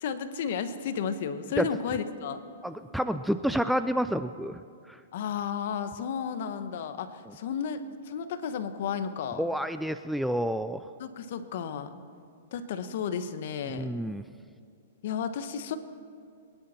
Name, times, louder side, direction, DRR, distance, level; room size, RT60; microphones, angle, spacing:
voice 1, 0.0-2.4 5.1-9.4 11.0-11.9 12.5-13.9 15.0-15.8, left 7 dB, 60° left, 10 dB, 1.1 m, -33 dB
voice 2, 2.6-4.6 4.9-5.0 9.4-10.9 13.7-14.2, equal, ahead, 10 dB, 0.3 m, -29 dB
23.5 x 11.0 x 4.3 m, 2.4 s
hypercardioid pair, 145°, 0 cm